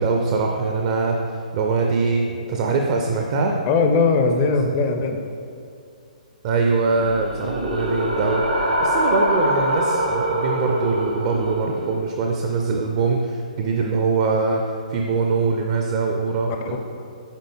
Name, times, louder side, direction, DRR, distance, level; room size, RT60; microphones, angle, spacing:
voice 1, 0.0-3.6 6.4-8.4 8.8-16.8, right 4 dB, 35° right, 2 dB, 0.4 m, -23 dB
voice 2, 3.7-5.2 16.5-16.8, left 4 dB, 30° left, 5 dB, 0.4 m, -20 dB
sound 1, 6.8-11.9, equal, 75° right, 1.3 m, -24 dB
8.3 x 3.8 x 3.5 m, 2.4 s
figure-of-eight pair, 125°, 4 cm